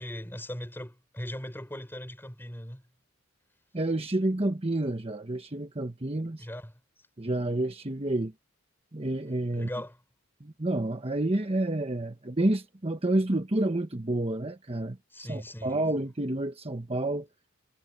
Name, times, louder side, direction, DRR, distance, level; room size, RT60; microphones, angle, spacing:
voice 1, 0.0-2.8 6.4-6.7 9.5-10.0 15.1-15.8, left 1 dB, 10° left, 4.3 m, -39 dB
voice 2, 3.7-6.5 7.2-8.3 8.9-9.7 10.4-17.3, right 1 dB, 30° right, 1.2 m, -29 dB
head